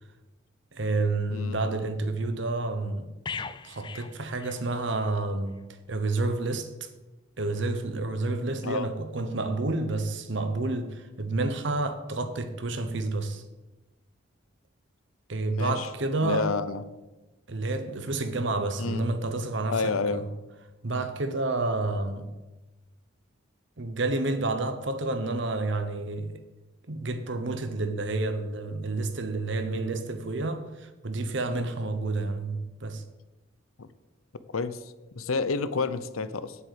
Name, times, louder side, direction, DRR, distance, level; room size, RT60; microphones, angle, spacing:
voice 1, 0.7-3.1 3.6-6.9 7.4-13.4 15.3-16.5 17.5-20.3 20.8-22.3 23.8-26.4 26.8-33.0, right 2 dB, 60° right, 0.9 m, -29 dB
sound 1, 3.2-5.1 5.5-5.7, left 5 dB, 20° left, 0.3 m, -39 dB
voice 2, 15.5-15.9 16.2-16.8 18.8-19.1 19.7-20.2 33.8-33.9 34.5-34.8 35.1-36.6, left 4 dB, 85° left, 0.7 m, -29 dB
8.2 x 7.7 x 8.0 m
head